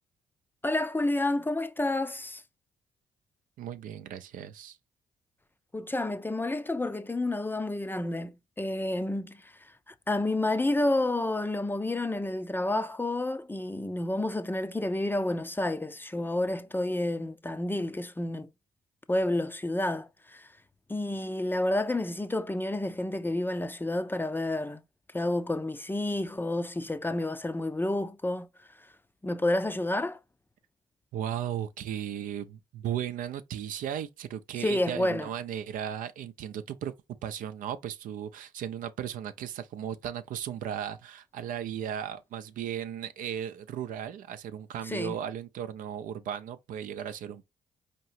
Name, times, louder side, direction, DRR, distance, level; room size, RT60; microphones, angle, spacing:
voice 1, 0.6-2.4 5.7-9.5 9.9-18.5 19.1-20.5 20.9-24.8 25.1-28.5 29.2-30.2 34.6-35.3 44.9-45.2, left 1 dB, 15° left, 0.5 m, -30 dB
voice 2, 3.6-4.8 31.1-36.9 37.2-47.4, right 9 dB, 65° right, 0.5 m, -36 dB
4.6 x 2.9 x 2.7 m
hypercardioid pair, 45°, 15 cm